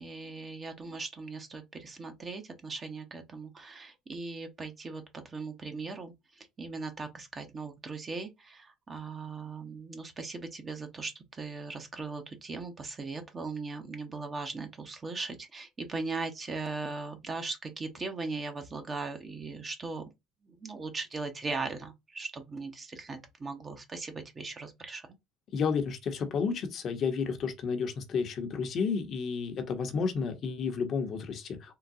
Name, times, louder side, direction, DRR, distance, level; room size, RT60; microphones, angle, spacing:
voice 1, 0.0-20.0 20.4-25.1, right 3 dB, 30° right, 0.8 m, -39 dB
voice 2, 25.5-31.8, left 5 dB, 50° left, 0.8 m, -31 dB
3.8 x 2.2 x 2.6 m
supercardioid pair, 90°, 0 cm